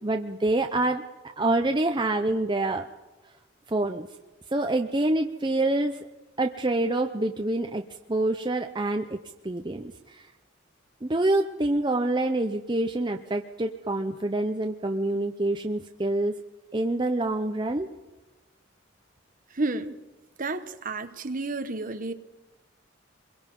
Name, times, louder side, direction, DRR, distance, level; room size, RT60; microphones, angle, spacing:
voice 1, 0.0-1.0 1.4-2.9 3.7-4.1 4.5-6.0 6.4-7.8 8.1-9.2 9.4-10.3 11.0-16.4 16.7-17.9, right 2 dB, 20° right, 4 dB, 0.7 m, -26 dB
voice 2, 19.5-19.9 20.4-22.1, right 2 dB, 40° right, 9 dB, 1.1 m, -31 dB
24.5 x 22.5 x 5.4 m, 1.1 s
head